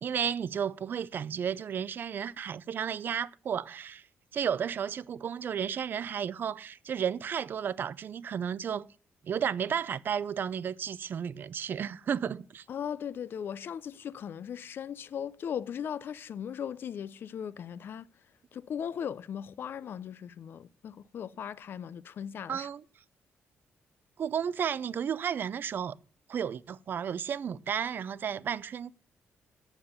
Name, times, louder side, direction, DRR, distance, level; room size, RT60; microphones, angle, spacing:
voice 1, 0.0-4.0 4.3-8.9 9.2-12.6 22.5-22.8 24.2-26.0 26.3-28.9, right 8 dB, 50° right, 0.4 m, -33 dB
voice 2, 12.7-18.1 18.5-22.7, left 8 dB, 55° left, 0.4 m, -38 dB
8.9 x 7.1 x 6.5 m
wide cardioid pair, 150°, 5 cm